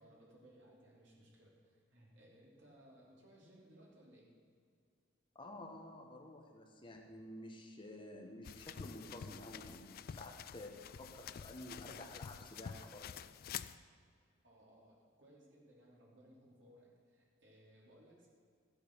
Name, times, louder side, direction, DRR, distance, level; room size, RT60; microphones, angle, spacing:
voice 1, 0.0-4.3 14.4-18.3, right 1 dB, 65° right, -3 dB, 3.0 m, -62 dB
voice 2, 5.3-13.1, left 1 dB, 25° left, 2 dB, 1.1 m, -51 dB
sound 1, 8.4-13.8, left 8 dB, 45° left, 0.3 m, -48 dB
13.5 x 8.2 x 6.1 m, 2.2 s
head